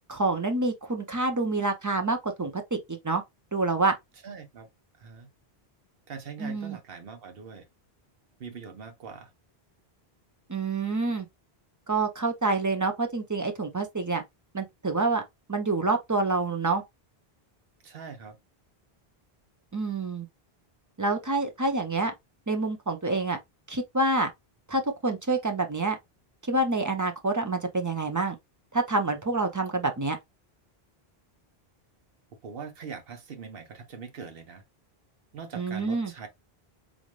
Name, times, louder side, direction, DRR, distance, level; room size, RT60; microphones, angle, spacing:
voice 1, 0.1-3.2 3.5-4.0 6.4-6.8 10.5-11.3 11.9-14.2 14.5-15.2 15.5-16.8 19.7-20.3 21.0-22.1 22.5-23.4 23.7-24.3 24.7-26.0 26.4-28.4 28.7-30.2 35.5-36.1, right 3 dB, 25° right, 0.4 m, -27 dB
voice 2, 4.2-4.7 5.0-5.3 6.1-7.6 8.4-9.3 17.8-18.4 32.4-34.6 35.3-36.3, right 6 dB, 65° right, 1.1 m, -42 dB
3.9 x 2.4 x 3.1 m
omnidirectional pair, 1.0 m